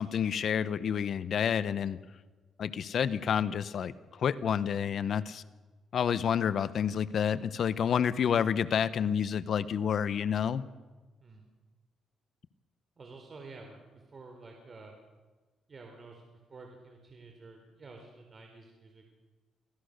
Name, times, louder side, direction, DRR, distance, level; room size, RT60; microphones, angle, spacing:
voice 1, 0.0-2.0 2.6-5.4 5.9-10.6, left 8 dB, 60° left, 16 dB, 0.9 m, -29 dB
voice 2, 13.0-14.9 15.7-19.1, right 3 dB, 40° right, 3 dB, 4.0 m, -50 dB
24.5 x 17.5 x 6.7 m, 1.3 s
cardioid pair, 90°, 0 cm